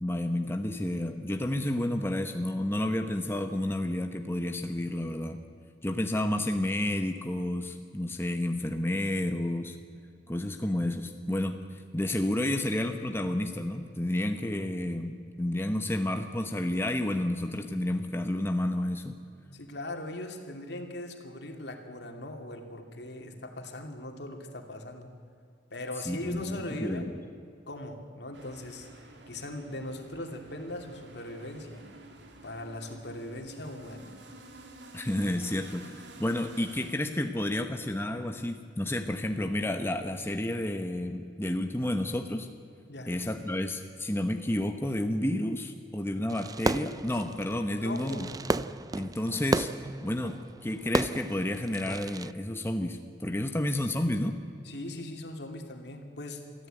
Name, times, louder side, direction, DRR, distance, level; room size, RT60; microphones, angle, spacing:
voice 1, 0.0-5.4 5.8-9.8 10.3-19.2 26.0-27.2 34.9-42.5 43.1-48.3 48.9-49.7 50.0-54.4, left 1 dB, 15° left, 5 dB, 1.0 m, -31 dB
voice 2, 19.5-25.1 25.7-27.2 27.7-28.9 29.3-31.9 32.4-34.1 42.9-43.1 47.8-48.4 54.6-56.7, left 1 dB, 65° left, 4 dB, 2.6 m, -40 dB
sound 1, 28.3-36.9, right 2 dB, 70° right, 2.7 m, -50 dB
Fireworks, 46.3-52.3, right 3 dB, 20° right, 0.4 m, -33 dB
24.0 x 14.5 x 9.0 m, 2.4 s
head